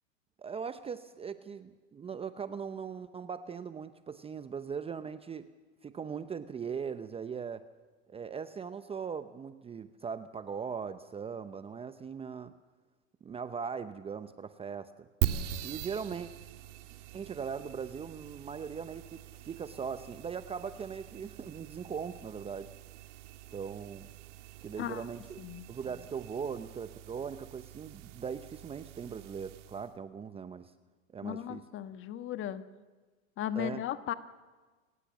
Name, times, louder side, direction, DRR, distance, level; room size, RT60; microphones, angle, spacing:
voice 1, 0.4-5.5 5.8-7.7 8.1-12.5 13.2-15.1 15.6-16.3 17.1-22.7 23.5-24.1 24.6-25.4 25.7-30.7 31.1-31.6 33.5-33.8, right 6 dB, 15° right, 11 dB, 0.8 m, -40 dB
sound 1, 15.2-29.9, right 12 dB, 60° right, 2.1 m, -42 dB
voice 2, 25.4-25.7 31.2-32.6 33.4-34.1, left 11 dB, 30° left, 11 dB, 1.4 m, -36 dB
28.5 x 18.0 x 7.2 m, 1.4 s
hypercardioid pair, 115°, 40 cm